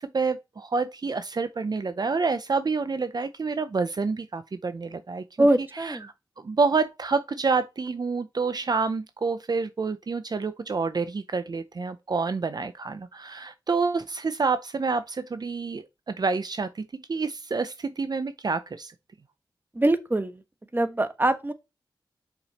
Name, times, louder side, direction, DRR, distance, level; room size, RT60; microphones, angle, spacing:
voice 1, 0.0-5.5 5.8-18.9, right 4 dB, 55° right, 0.6 m, -28 dB
voice 2, 5.4-6.1 19.7-20.4 20.7-21.5, right 1 dB, 25° right, 1.2 m, -23 dB
6.1 x 5.8 x 4.2 m
cardioid pair, 55°, 8 cm